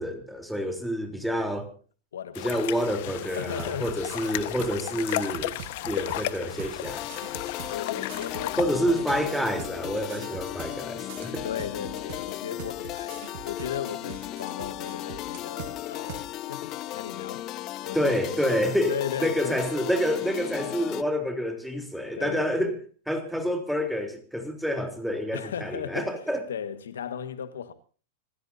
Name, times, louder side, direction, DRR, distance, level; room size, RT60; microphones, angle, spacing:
voice 1, 0.0-1.7 2.4-5.6 5.9-7.1 8.6-11.5 17.9-22.8 23.1-26.4, equal, ahead, 3.6 m, -28 dB
voice 2, 2.1-2.7 3.0-4.0 7.7-9.3 11.4-17.5 17.8-19.6 22.2-22.6 25.3-26.1 26.5-27.7, left 8 dB, 90° left, 1.6 m, -36 dB
sound 1, 2.3-8.6, left 16 dB, 60° left, 1.3 m, -34 dB
sound 2, 3.2-4.8 5.1-7.8 8.1-10.8 11.1-15.7 16.1-16.2, right 11 dB, 65° right, 1.8 m, -42 dB
sound 3, 6.8-21.0, left 14 dB, 40° left, 0.7 m, -36 dB
27.0 x 16.5 x 2.7 m
hypercardioid pair, 125°, 0 cm